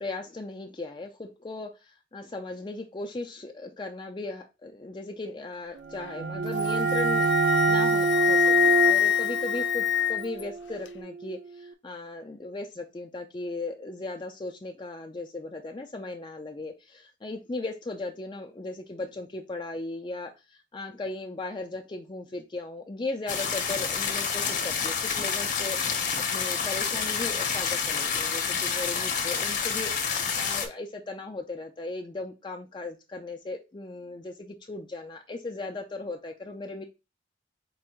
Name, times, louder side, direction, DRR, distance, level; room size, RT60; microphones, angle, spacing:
voice 1, 0.0-36.8, left 2 dB, 25° left, 3 dB, 0.4 m, -37 dB
sound 1, 5.8-11.4, right 4 dB, 75° right, 0.5 m, -27 dB
Wind instrument woodwind instrument, 6.5-10.4, left 10 dB, 70° left, 0.5 m, -25 dB
sound 2, 23.3-30.7, left 6 dB, 45° left, 0.8 m, -28 dB
4.6 x 2.6 x 4.3 m, 0.27 s
head